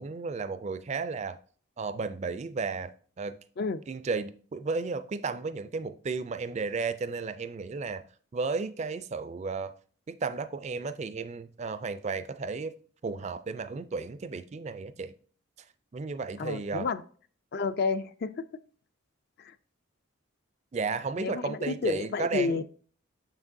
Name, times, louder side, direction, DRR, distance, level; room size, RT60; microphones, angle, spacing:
voice 1, 0.0-1.4 1.8-3.4 3.9-8.0 8.3-9.7 10.1-12.7 13.0-15.1 15.9-16.9 20.7-22.6, right 4 dB, 35° right, 0.3 m, -33 dB
voice 2, 16.4-17.0 17.5-18.4 19.4-19.5 21.2-22.6, left 4 dB, 50° left, 0.4 m, -30 dB
7.0 x 6.0 x 2.6 m
head